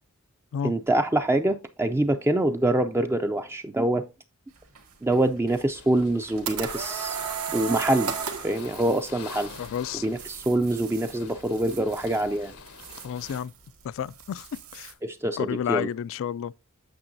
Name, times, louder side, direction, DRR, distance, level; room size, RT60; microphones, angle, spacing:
voice 1, 0.6-4.1 5.0-7.2 7.5-8.2 8.4-9.5 10.0-12.5 15.0-15.9, right 1 dB, 10° right, 0.4 m, -25 dB
sound 1, 4.5-14.9, right 7 dB, 70° right, 1.9 m, -49 dB
sound 2, 5.7-13.4, left 5 dB, 90° left, 1.1 m, -47 dB
sound 3, 6.0-8.6, right 6 dB, 85° right, 1.6 m, -31 dB
voice 2, 9.6-10.0 13.0-13.5 13.8-14.5 14.7-14.9 15.4-16.6, left 8 dB, 65° left, 0.3 m, -31 dB
8.7 x 6.9 x 2.6 m
head